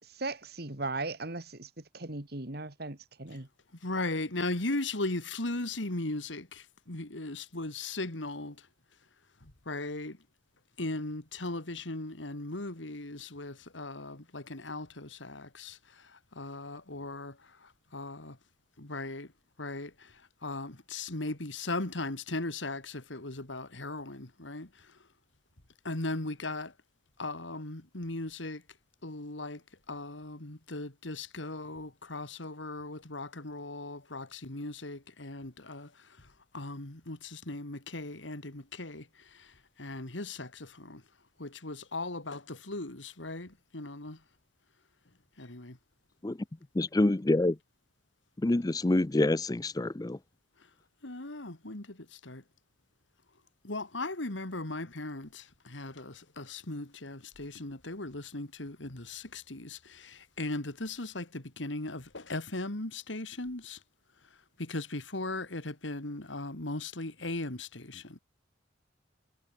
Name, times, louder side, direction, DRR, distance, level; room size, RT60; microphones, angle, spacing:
voice 1, 0.0-3.5, right 3 dB, 60° right, 2.4 m, -38 dB
voice 2, 3.8-8.7 9.4-10.2 10.8-18.4 18.8-19.3 19.6-24.9 25.8-26.7 27.2-28.6 29.0-29.6 29.9-36.3 36.5-41.0 41.4-44.2 45.4-45.8 51.0-52.4 53.6-63.8 64.6-68.2, left 2 dB, 85° left, 2.8 m, -38 dB
voice 3, 46.7-47.5 48.4-50.2, left 2 dB, 20° left, 0.5 m, -26 dB
head